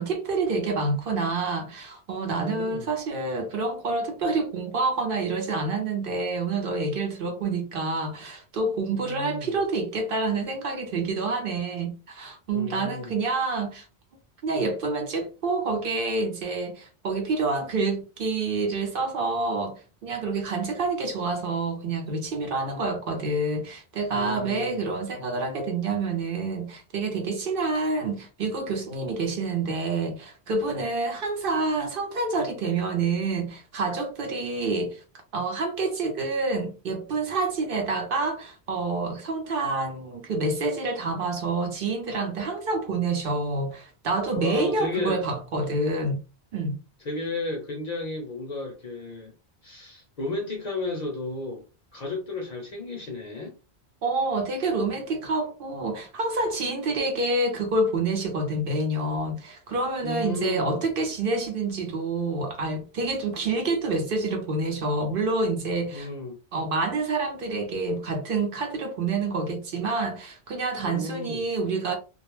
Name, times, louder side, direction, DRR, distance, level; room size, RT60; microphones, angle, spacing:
voice 1, 0.0-13.9 14.4-35.0 35.3-46.2 46.5-46.8 54.0-66.1 66.5-72.0, right 3 dB, 60° right, 0.7 m, -28 dB
voice 2, 2.3-2.9 8.9-9.6 12.5-13.1 24.1-24.8 44.3-45.2 47.0-49.3 49.6-51.6 51.9-53.6 60.0-60.9 65.9-66.4 70.8-71.5, left 2 dB, 50° left, 0.6 m, -33 dB
2.2 x 2.0 x 3.0 m
omnidirectional pair, 1.1 m